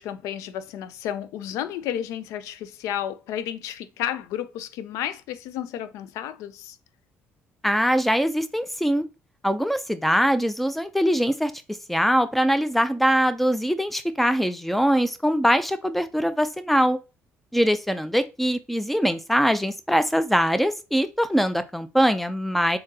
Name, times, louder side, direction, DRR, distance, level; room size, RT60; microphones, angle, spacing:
voice 1, 0.0-6.8, left 10 dB, 80° left, 0.4 m, -32 dB
voice 2, 7.6-9.0 9.4-11.5 11.9-17.0 17.5-22.8, equal, 5° left, 0.4 m, -22 dB
3.7 x 2.7 x 2.7 m
cardioid pair, 90°, 5 cm